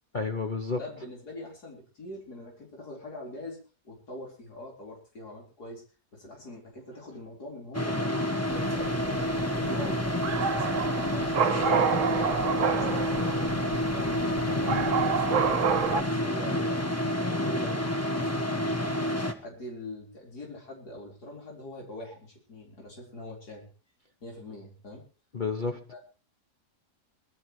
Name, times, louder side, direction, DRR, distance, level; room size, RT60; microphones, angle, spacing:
voice 1, 0.1-0.8 14.6-14.9 25.3-26.0, left 4 dB, 35° left, 6 dB, 0.9 m, -31 dB
voice 2, 0.8-3.6 3.8-5.8 6.1-9.0 9.4-11.9 12.2-13.2 13.9-16.9 17.1-17.8 18.1-18.9 19.4-23.7 24.2-25.0 25.9-26.0, left 1 dB, 75° left, -2 dB, 4.9 m, -43 dB
sound 1, 7.7-19.3, left 1 dB, 10° left, 1.3 m, -29 dB
sound 2, 8.5-16.0, right 7 dB, 55° right, 1.2 m, -29 dB
23.0 x 12.5 x 3.2 m, 0.35 s
omnidirectional pair, 1.7 m